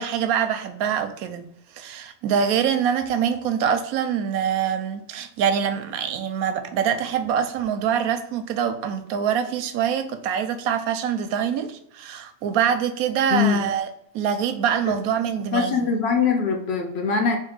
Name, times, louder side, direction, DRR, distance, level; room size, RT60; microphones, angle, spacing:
voice 1, 0.0-1.5 1.7-13.9 14.1-15.8, right 8 dB, 90° right, 1.0 m, -24 dB
voice 2, 15.5-17.4, left 5 dB, 60° left, 0.8 m, -22 dB
3.6 x 2.7 x 3.9 m
omnidirectional pair, 1.5 m